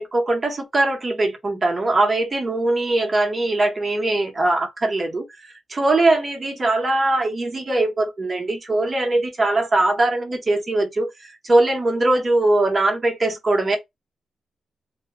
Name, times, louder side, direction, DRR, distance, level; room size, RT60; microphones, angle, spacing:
voice 1, 0.0-13.8, right 2 dB, 25° right, 0.8 m, -21 dB
2.2 x 2.1 x 2.9 m
wide cardioid pair, 160°, 0 cm